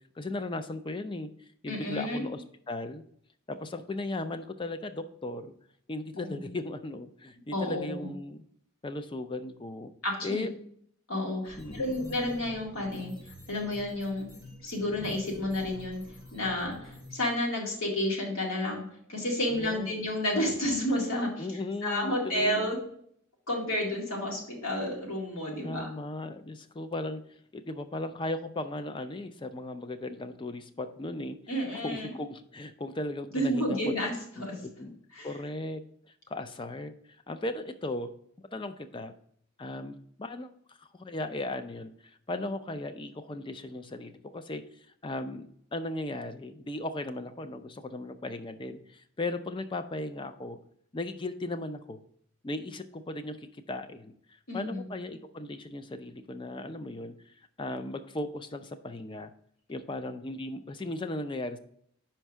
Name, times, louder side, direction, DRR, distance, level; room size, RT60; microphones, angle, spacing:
voice 1, 0.2-1.3 1.6-3.0 3.5-5.5 5.9-8.4 8.8-9.9 10.2-10.5 11.6-12.0 19.5-20.0 21.4-22.8 25.6-27.2 27.5-31.4 31.7-33.9 34.4-35.0 35.2-35.8 36.3-36.9 37.3-38.1 38.5-39.1 39.6-40.5 40.8-44.6 45.0-50.6 50.9-52.0 52.4-54.1 54.5-57.2 57.6-59.3 59.7-61.6, left 2 dB, 25° left, 9 dB, 0.4 m, -37 dB
voice 2, 1.7-2.2 6.2-6.4 7.5-8.1 10.0-10.4 11.1-13.1 13.5-14.3 14.6-16.0 16.3-22.8 23.5-25.9 31.5-32.1 33.3-34.6 35.2-35.3 54.5-54.8, left 1 dB, 75° left, -1 dB, 2.0 m, -31 dB
sound 1, 11.4-17.3, left 1 dB, 55° left, 2.5 m, -47 dB
5.4 x 4.5 x 6.0 m, 0.66 s
head